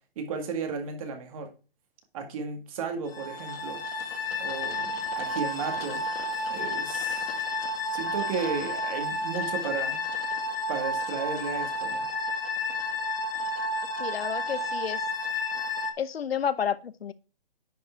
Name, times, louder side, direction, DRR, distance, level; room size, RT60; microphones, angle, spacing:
voice 1, 0.2-1.5 2.1-3.8 4.4-6.0 6.5-7.3 7.9-10.0 10.7-12.0, right 5 dB, 35° right, 1.9 m, -34 dB
sound 1, 3.1-15.9, left 2 dB, 75° left, 1.8 m, -31 dB
voice 2, 14.0-15.0 16.0-17.1, left 8 dB, 90° left, 0.8 m, -30 dB
10.0 x 4.8 x 4.5 m
hypercardioid pair, 160°, 29 cm